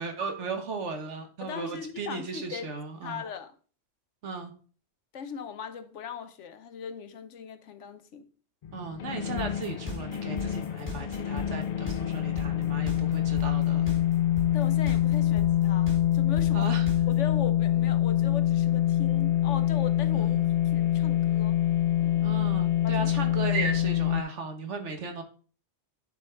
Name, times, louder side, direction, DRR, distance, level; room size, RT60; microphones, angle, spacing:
voice 1, 0.0-3.2 4.2-4.5 8.7-13.9 16.5-16.9 20.1-20.5 22.2-25.2, right 4 dB, 75° right, 1.6 m, -36 dB
voice 2, 1.4-2.7 3.0-3.5 5.1-8.3 14.5-16.7 17.1-21.6 22.0-22.3 22.8-23.1, left 6 dB, 85° left, 1.1 m, -39 dB
sound 1, 8.6-24.2, left 12 dB, 65° left, 0.3 m, -25 dB
sound 2, 9.4-17.3, left 2 dB, 10° right, 3.2 m, -36 dB
9.7 x 4.2 x 4.4 m
omnidirectional pair, 1.2 m